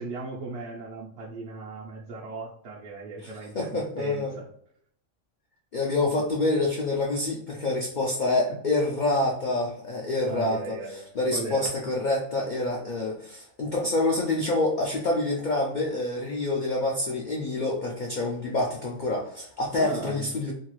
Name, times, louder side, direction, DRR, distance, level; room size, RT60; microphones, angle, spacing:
voice 1, 0.0-4.5 10.3-11.7 19.8-20.3, right 3 dB, 65° right, -3 dB, 0.8 m, -37 dB
voice 2, 3.2-4.3 5.7-20.5, left 2 dB, 65° left, -1 dB, 0.4 m, -27 dB
2.8 x 2.3 x 2.9 m, 0.68 s
omnidirectional pair, 1.4 m